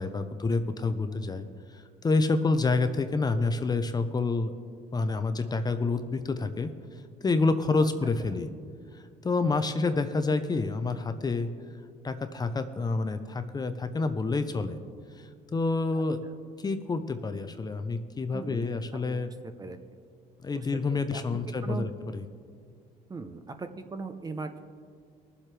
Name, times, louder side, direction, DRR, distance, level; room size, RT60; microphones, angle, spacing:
voice 1, 0.0-4.5 4.9-6.7 7.2-8.5 8.9-11.5 12.0-14.8 15.2-16.2 16.6-19.3 20.4-21.9 22.1-22.2, left 3 dB, 25° left, 9 dB, 0.6 m, -28 dB
voice 2, 18.3-18.7 19.1-19.3 19.6-19.8 20.5-21.2 21.6-21.9 23.1-24.6, right 4 dB, 20° right, 8 dB, 0.7 m, -39 dB
22.0 x 7.5 x 3.3 m, 2.1 s
cardioid pair, 110°, 17 cm